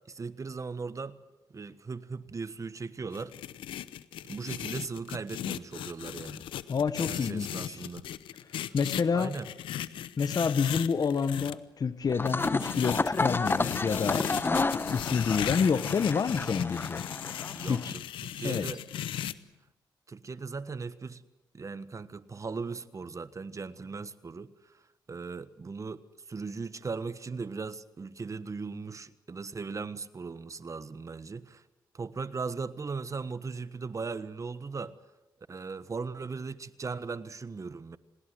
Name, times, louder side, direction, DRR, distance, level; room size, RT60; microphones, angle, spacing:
voice 1, 0.1-1.2 1.5-3.3 4.2-6.4 7.1-8.1 9.1-9.5 17.5-18.8 20.1-21.2 21.5-24.5 25.1-26.0 26.3-31.6 31.9-34.9 35.5-38.0, right 4 dB, 40° right, 1.4 m, -38 dB
sound 1, 3.1-11.5 12.3-19.3, left 11 dB, 90° left, 0.8 m, -37 dB
voice 2, 6.7-7.8 8.7-9.3 10.2-14.3 14.7-17.0 17.7-18.0 18.4-18.7, left 5 dB, 50° left, 1.2 m, -28 dB
sound 2, 12.1-17.9, left 3 dB, 25° left, 1.1 m, -31 dB
28.0 x 19.5 x 7.8 m
cardioid pair, 65°, 8 cm